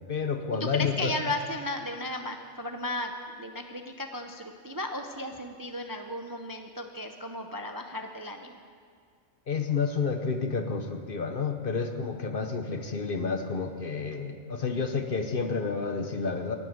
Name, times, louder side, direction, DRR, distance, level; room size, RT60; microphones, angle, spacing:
voice 1, 0.1-1.1 9.5-16.6, left 5 dB, 45° left, 6 dB, 1.0 m, -30 dB
voice 2, 0.7-8.6, left 1 dB, 20° right, 5 dB, 0.5 m, -35 dB
12.0 x 11.0 x 9.4 m, 2.1 s
omnidirectional pair, 1.4 m